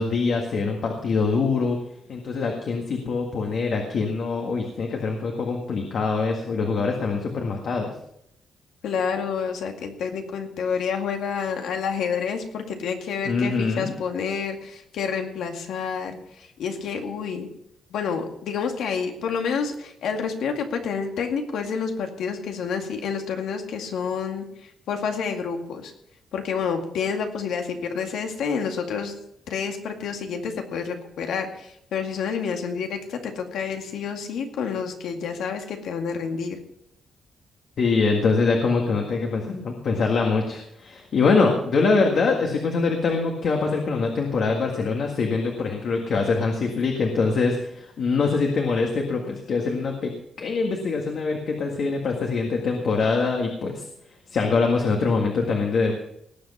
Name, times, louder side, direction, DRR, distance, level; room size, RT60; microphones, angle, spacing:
voice 1, 0.0-1.8 2.1-7.9 13.3-13.9 37.8-50.1 50.4-53.9 54.3-56.0, left 4 dB, 50° left, 1 dB, 1.8 m, -24 dB
voice 2, 8.8-16.1 16.6-17.5 17.9-24.5 24.9-25.9 26.3-29.1 29.5-36.6, left 6 dB, 80° left, 4 dB, 2.1 m, -29 dB
19.0 x 7.9 x 5.5 m, 0.74 s
wide cardioid pair, 175°, 0 cm